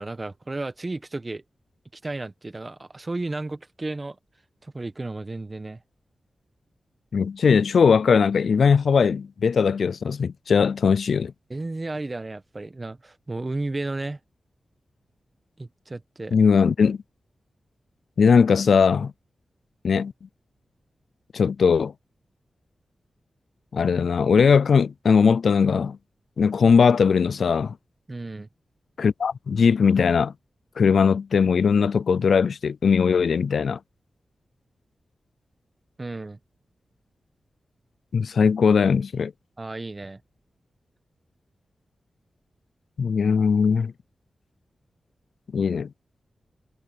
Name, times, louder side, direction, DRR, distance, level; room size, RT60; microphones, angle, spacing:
voice 1, 0.0-1.4 1.9-4.2 4.6-5.8 11.5-14.2 15.6-16.3 28.1-28.5 36.0-36.4 39.6-40.2, right 2 dB, 25° right, 1.2 m, -33 dB
voice 2, 7.1-11.3 16.3-17.0 18.2-19.1 19.8-20.1 21.3-21.9 23.7-26.0 26.4-27.7 29.0-30.3 30.8-33.8 38.1-39.3 43.0-43.9 45.5-45.9, left 6 dB, 75° left, 0.4 m, -19 dB
wide cardioid pair, 105°, 0 cm